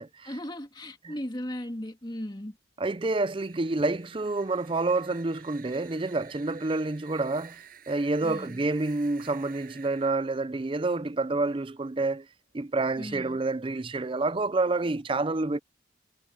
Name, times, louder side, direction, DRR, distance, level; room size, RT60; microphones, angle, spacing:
voice 1, 0.2-2.6 8.2-8.6 13.0-13.4, left 1 dB, 25° left, 2.1 m, -37 dB
voice 2, 2.8-7.6 7.9-12.2 12.5-15.6, right 3 dB, 25° right, 0.5 m, -28 dB
sound 1, 3.2-12.0, right 8 dB, 50° right, 7.7 m, -52 dB
head